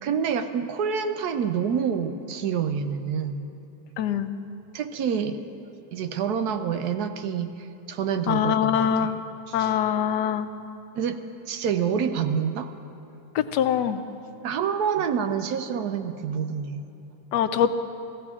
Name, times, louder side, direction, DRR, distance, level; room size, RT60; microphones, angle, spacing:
voice 1, 0.0-3.5 4.7-5.4 5.9-9.1 9.5-9.7 10.9-12.7 14.4-16.8, right 7 dB, 75° right, 9 dB, 1.2 m, -27 dB
voice 2, 4.0-4.3 8.3-9.2 9.5-10.5 13.3-14.0 17.3-17.7, left 9 dB, 90° left, 10 dB, 1.2 m, -23 dB
16.5 x 15.0 x 3.6 m, 2.9 s
omnidirectional pair, 1.8 m